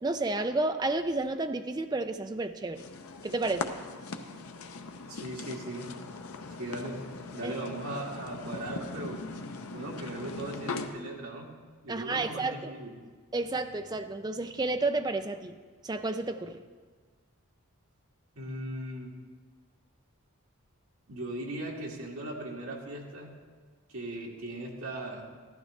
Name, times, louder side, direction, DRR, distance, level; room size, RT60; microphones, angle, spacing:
voice 1, 0.0-2.9 3.2-3.7 7.4-7.5 11.9-12.7 13.3-15.6 15.8-16.6, right 2 dB, 20° right, 8 dB, 0.4 m, -31 dB
sound 1, 2.7-10.9, left 3 dB, 75° left, 0.7 m, -40 dB
voice 2, 5.1-5.9 6.6-7.0 7.3-9.2 9.7-11.5 11.8-13.0 18.4-19.1 21.1-23.3 23.9-25.3, right 1 dB, 80° right, -2 dB, 2.0 m, -38 dB
14.5 x 12.0 x 3.2 m, 1.5 s
head